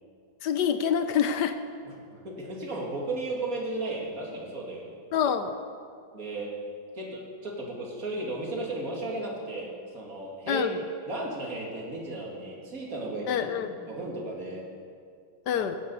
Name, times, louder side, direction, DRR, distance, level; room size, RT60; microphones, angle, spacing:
voice 1, 0.4-1.6 5.1-5.6 10.5-10.8 13.3-13.7 15.5-15.8, left 8 dB, 70° left, 9 dB, 1.2 m, -26 dB
voice 2, 2.1-5.0 6.1-6.6 6.9-10.7 11.1-14.6 15.5-15.6, right 2 dB, 45° right, -2 dB, 2.6 m, -35 dB
15.5 x 10.5 x 5.5 m, 2.2 s
omnidirectional pair, 2.1 m